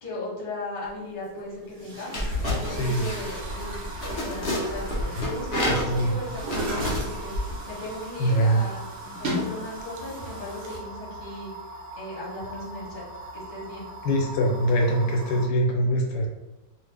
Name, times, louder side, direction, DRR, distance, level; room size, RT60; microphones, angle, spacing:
voice 1, 0.0-7.3 7.7-8.8 9.2-11.5 12.0-13.0 13.3-13.9, left 1 dB, 35° left, -6 dB, 1.0 m, -37 dB
Chatter / Gurgling / Tap, 0.9-1.0 1.7-10.8, equal, 60° right, 1.1 m, -37 dB
sound 1, 2.1-7.6, left 1 dB, 60° left, 0.5 m, -30 dB
sound 2, 2.4-15.5, right 1 dB, 80° right, 1.2 m, -41 dB
voice 2, 5.6-6.1 8.2-8.6 14.0-16.3, right 1 dB, 85° left, 1 dB, 1.3 m, -23 dB
2.8 x 2.6 x 3.3 m, 1.0 s
omnidirectional pair, 1.9 m